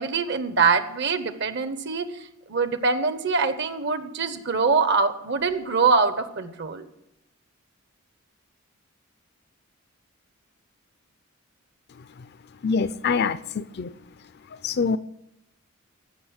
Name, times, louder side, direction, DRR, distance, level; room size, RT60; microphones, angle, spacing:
voice 1, 0.0-6.9, right 4 dB, 55° right, 1.0 m, -24 dB
voice 2, 12.6-13.9 14.6-15.0, left 5 dB, 50° left, 0.5 m, -25 dB
15.0 x 6.4 x 8.0 m
head